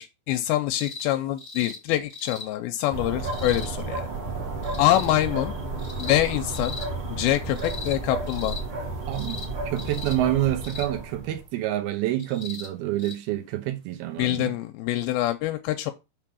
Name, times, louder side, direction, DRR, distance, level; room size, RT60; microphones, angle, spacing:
voice 1, 0.0-4.1 4.8-5.5 6.0-6.8 7.1-8.6 14.2-15.9, left 14 dB, 85° left, 2.4 m, -25 dB
sound 1, 0.8-1.1 1.4-1.8 2.1-2.5 3.2-3.7 4.6-5.1 5.8-6.2 6.5-6.9 7.5-8.0 8.3-8.6 9.1-9.5 9.8-10.2 10.6-10.9 12.2-12.7 13.0-13.1 14.2-14.3, left 4 dB, 30° left, 1.1 m, -38 dB
sound 2, 2.9-11.4, right 2 dB, 55° right, 1.6 m, -32 dB
voice 2, 9.1-14.5, right 14 dB, 85° right, 2.8 m, -28 dB
6.3 x 3.5 x 6.1 m
omnidirectional pair, 4.4 m